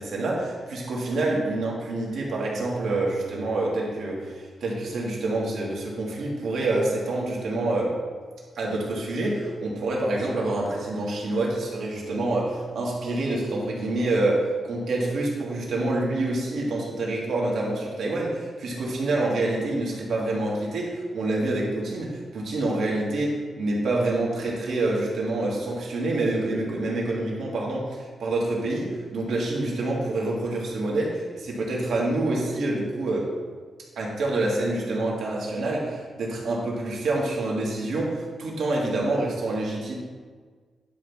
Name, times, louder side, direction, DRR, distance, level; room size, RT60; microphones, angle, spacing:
voice 1, 0.0-8.0 8.5-33.3 34.0-39.9, right 2 dB, 80° right, -3 dB, 2.0 m, -27 dB
10.0 x 3.5 x 5.6 m, 1.5 s
wide cardioid pair, 125°, 0 cm